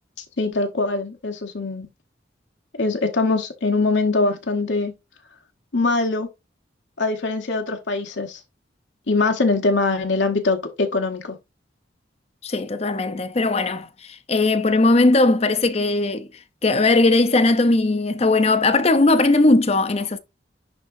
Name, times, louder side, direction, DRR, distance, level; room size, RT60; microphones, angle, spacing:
voice 1, 0.2-1.9 2.8-4.9 5.7-6.3 7.0-8.4 9.1-11.4, left 3 dB, 75° left, 1.2 m, -22 dB
voice 2, 12.4-16.3 16.6-20.2, left 2 dB, 35° left, 0.6 m, -18 dB
11.0 x 3.7 x 2.6 m
head